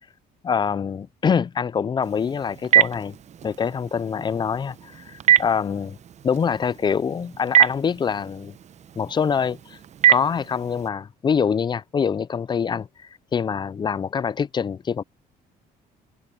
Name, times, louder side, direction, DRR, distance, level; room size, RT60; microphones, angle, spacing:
voice 1, 0.4-3.2 3.4-6.0 6.2-8.5 9.0-9.8 10.1-15.0, left 6 dB, 25° left, 0.4 m, -25 dB
Telephone, 2.0-10.9, right 11 dB, 45° right, 0.7 m, -25 dB
cardioid pair, 110°, 17 cm